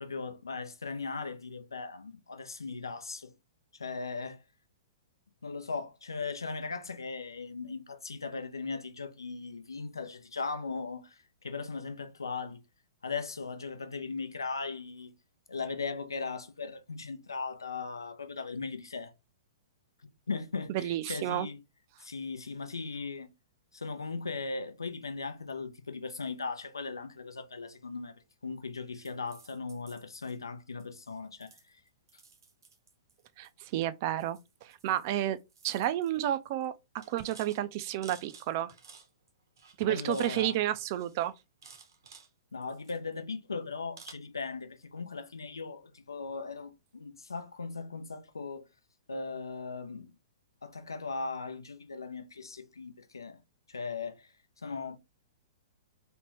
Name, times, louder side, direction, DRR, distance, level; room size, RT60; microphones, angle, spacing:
voice 1, 0.0-3.3 3.8-4.4 5.4-12.6 13.0-15.1 15.5-19.1 20.3-21.6 22.0-23.3 23.7-31.8 39.9-40.6 42.5-48.7 49.1-50.1 50.6-53.4 53.7-54.3 54.6-55.0, left 4 dB, 75° left, 0.6 m, -38 dB
voice 2, 20.7-21.5 33.4-35.4 35.6-36.7 37.1-38.7 39.8-41.3, right 13 dB, 40° right, 0.3 m, -31 dB
sound 1, 29.0-30.4 30.8-31.1 31.4-33.5 34.2-35.1 35.4-36.2 36.4-36.6 37.0-39.3 39.6-40.4 40.7-42.3 42.6-43.3 44.0-44.1, right 5 dB, 65° right, 0.8 m, -55 dB
3.3 x 2.1 x 3.0 m
figure-of-eight pair, 110°, 2 cm